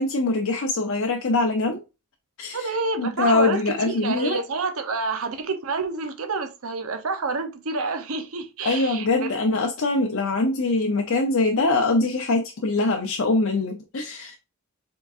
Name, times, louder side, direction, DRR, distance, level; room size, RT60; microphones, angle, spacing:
voice 1, 0.0-1.8 2.4-4.4 8.6-14.3, left 2 dB, 60° left, 0.6 m, -23 dB
voice 2, 2.5-9.3, right 4 dB, 65° right, 0.8 m, -28 dB
4.7 x 3.8 x 2.5 m
head